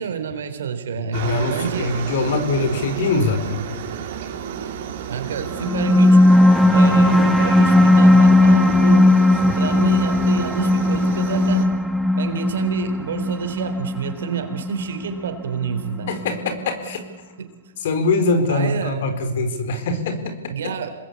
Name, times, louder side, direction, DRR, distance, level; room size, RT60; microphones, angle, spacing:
voice 1, 0.0-1.9 5.1-6.2 6.7-9.1 9.5-11.7 12.1-16.1 17.4-17.5 18.5-19.1 20.5-21.0, right 7 dB, 70° right, 7 dB, 3.8 m, -28 dB
voice 2, 1.0-3.7 9.4-9.6 16.1-17.0 17.8-20.3, left 3 dB, 60° left, 8 dB, 4.4 m, -23 dB
Aircraft, 1.1-11.7, right 8 dB, 50° right, 4.1 m, -32 dB
sound 1, 5.5-16.5, left 1 dB, ahead, 1.1 m, -16 dB
27.0 x 20.5 x 8.5 m, 1.3 s
hypercardioid pair, 130°, 0 cm